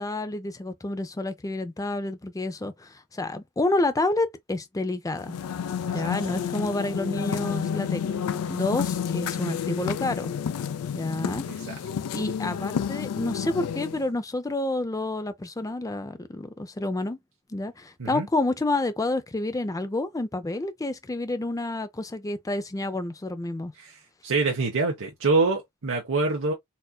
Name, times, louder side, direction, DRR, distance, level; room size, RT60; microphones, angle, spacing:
voice 1, 0.0-5.4 5.9-8.2 8.5-10.3 10.9-11.4 12.1-17.2 17.5-23.7, left 2 dB, 15° left, 0.5 m, -29 dB
sound 1, 5.2-14.1, left 7 dB, 80° left, 0.4 m, -30 dB
voice 2, 11.4-11.7 18.0-18.3 23.8-24.0 24.2-26.5, right 3 dB, 60° right, 0.9 m, -25 dB
4.2 x 2.6 x 2.2 m
head